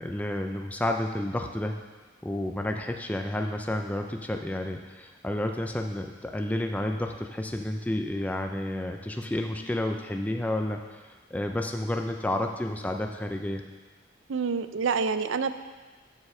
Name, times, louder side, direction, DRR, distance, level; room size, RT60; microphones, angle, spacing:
voice 1, 0.0-1.7 2.2-13.6, left 1 dB, 10° left, 4 dB, 0.4 m, -31 dB
voice 2, 14.3-15.5, right 5 dB, 80° right, 11 dB, 0.5 m, -27 dB
7.2 x 6.2 x 6.4 m, 1.3 s
head